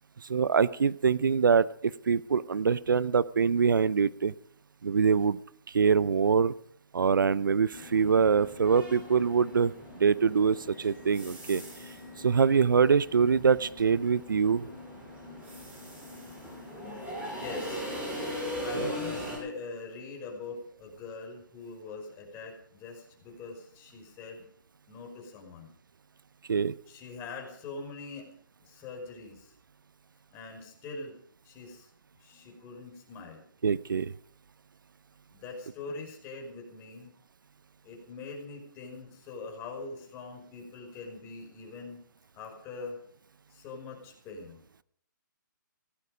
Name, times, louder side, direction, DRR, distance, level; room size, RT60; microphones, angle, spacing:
voice 1, 0.2-4.3 4.8-5.4 5.7-6.5 6.9-9.7 10.0-11.6 12.2-14.7 18.7-18.9 26.5-26.7 33.6-34.1, right 6 dB, 75° right, 19 dB, 0.7 m, -24 dB
sound 1, 7.7-19.4, equal, 15° right, 7.0 m, -40 dB
voice 2, 17.3-17.9 18.6-24.4 24.9-25.7 26.9-28.3 28.6-29.5 30.3-31.1 31.4-31.9 32.2-33.4 35.3-37.1 37.8-42.0 42.3-42.9 43.5-44.6, left 4 dB, 20° left, 2 dB, 5.4 m, -43 dB
17.0 x 16.0 x 5.0 m, 0.63 s
hypercardioid pair, 145°, 11 cm